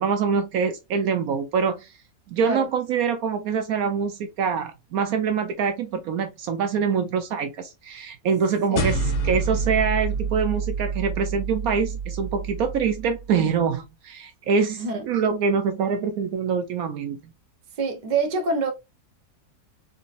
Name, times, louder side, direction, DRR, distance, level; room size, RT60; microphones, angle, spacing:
voice 1, 0.0-1.9 2.3-17.2, right 6 dB, 70° right, 1.0 m, -25 dB
sound 1, 8.8-13.4, right 4 dB, 60° left, 1.1 m, -28 dB
voice 2, 17.8-18.7, right 3 dB, 40° right, 0.8 m, -25 dB
4.0 x 2.7 x 2.5 m
omnidirectional pair, 1.7 m